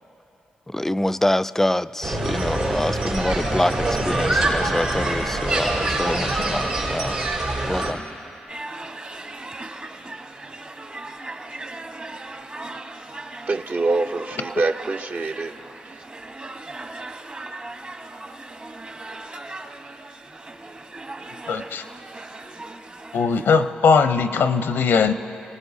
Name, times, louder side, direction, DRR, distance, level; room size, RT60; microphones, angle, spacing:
voice 1, 0.7-7.2 7.7-8.0, left 1 dB, 10° left, 15 dB, 0.3 m, -25 dB
sound 1, 2.0-7.9, right 2 dB, 90° right, 4.3 m, -24 dB
sound 2, 8.5-23.7, right 2 dB, 35° right, 1.1 m, -38 dB
voice 2, 13.5-15.5, right 3 dB, 55° right, 6 dB, 0.7 m, -24 dB
voice 3, 21.5-21.8 23.1-25.1, left 5 dB, 80° left, 9 dB, 0.6 m, -19 dB
27.0 x 18.5 x 2.7 m, 3.0 s
cardioid pair, 55°, 4 cm